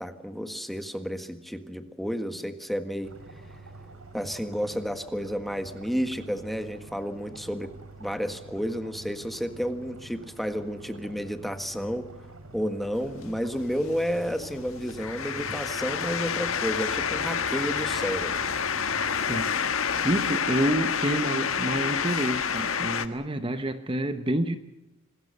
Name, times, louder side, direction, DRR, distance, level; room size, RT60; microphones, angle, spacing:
voice 1, 0.0-3.1 4.1-7.7 8.0-12.1 12.5-18.4, equal, ahead, 8 dB, 1.6 m, -31 dB
sound 1, 3.0-19.5, right 2 dB, 85° right, 4.2 m, -47 dB
sound 2, 12.9-23.1, left 7 dB, 75° left, 1.5 m, -29 dB
voice 2, 19.3-19.6 20.0-24.6, right 1 dB, 25° right, 9 dB, 1.0 m, -28 dB
26.5 x 20.5 x 6.7 m, 0.98 s
head